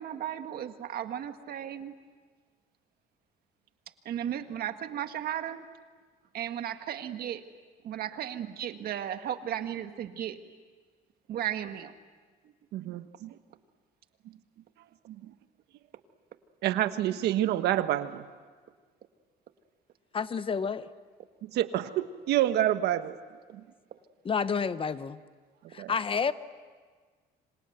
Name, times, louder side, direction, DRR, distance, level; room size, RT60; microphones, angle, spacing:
voice 1, 0.0-1.9 4.1-5.7 6.3-7.4 7.8-10.4 11.3-11.9, right 10 dB, 65° right, 1.8 m, -35 dB
voice 2, 12.7-13.4 15.1-15.3 16.6-18.2 21.5-23.2 23.5-23.6 25.8-25.9, right 13 dB, 80° right, 1.4 m, -28 dB
voice 3, 20.1-20.9 24.2-25.2 25.7-26.3, left 6 dB, 30° left, 0.9 m, -29 dB
27.5 x 26.0 x 8.0 m
cardioid pair, 110°, 17 cm